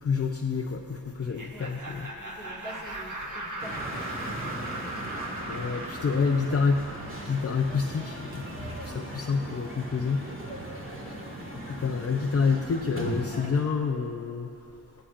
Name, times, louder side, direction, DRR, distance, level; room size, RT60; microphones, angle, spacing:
voice 1, 0.0-2.1 3.3-3.4 5.5-6.8 7.2-8.4 8.8-10.2 11.8-14.5, left 5 dB, 35° left, 3 dB, 0.6 m, -28 dB
Laughter, 1.2-8.0, right 2 dB, 45° right, 1.5 m, -39 dB
voice 2, 1.5-1.8 2.2-5.6 6.5-6.7 7.7-7.9 11.0-11.3, equal, ahead, -2 dB, 1.9 m, -47 dB
sound 1, 3.6-13.5, right 1 dB, 30° right, 1.9 m, -38 dB
15.0 x 11.0 x 2.5 m, 2.6 s
cardioid pair, 60°, 44 cm